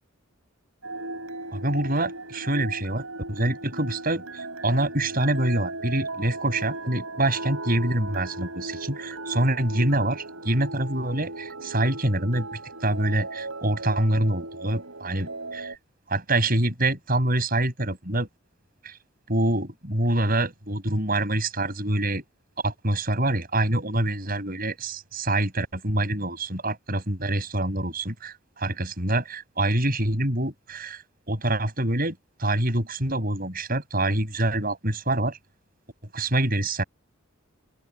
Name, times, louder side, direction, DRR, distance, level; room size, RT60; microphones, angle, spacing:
sound 1, 0.8-15.8, right 2 dB, 70° right, 7.0 m, -37 dB
voice 1, 1.5-15.7 16.1-18.3 18.8-18.9 19.3-22.2 22.6-35.4 36.1-36.8, right 1 dB, 40° right, 7.2 m, -26 dB
open air
head